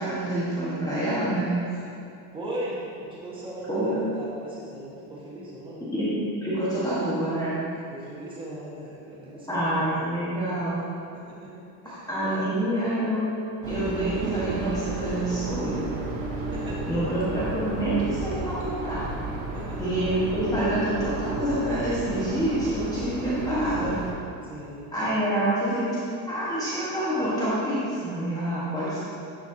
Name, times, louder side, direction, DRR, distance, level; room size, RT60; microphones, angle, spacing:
voice 1, 0.0-1.5 3.7-4.0 5.9-7.6 9.5-10.8 12.1-13.3 13.7-15.9 16.9-19.0 19.8-24.0 24.9-25.9 26.3-29.0, right 1 dB, 10° left, -11 dB, 1.5 m, -27 dB
voice 2, 2.3-5.8 7.9-10.1 11.1-11.5 11.8-12.6 16.3-17.2 19.5-19.8 24.4-24.9, right 1 dB, 15° right, -7 dB, 1.5 m, -38 dB
sound 1, 13.6-24.1, right 2 dB, 50° right, 1.3 m, -32 dB
11.0 x 4.7 x 2.9 m, 2.6 s
supercardioid pair, 130°, 38 cm